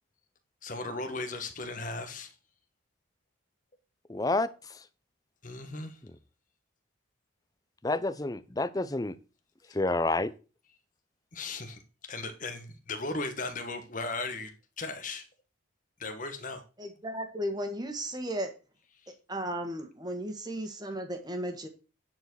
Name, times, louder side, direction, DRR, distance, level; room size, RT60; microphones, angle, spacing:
voice 1, 0.6-2.3 5.4-6.0 11.3-15.3 16.0-16.6, left 3 dB, 40° left, 1.5 m, -37 dB
voice 2, 4.1-4.9 7.8-9.2 9.7-10.3, left 2 dB, 20° left, 0.5 m, -29 dB
voice 3, 16.8-18.5 19.1-21.7, right 1 dB, 20° right, 1.7 m, -35 dB
10.0 x 4.7 x 6.3 m
head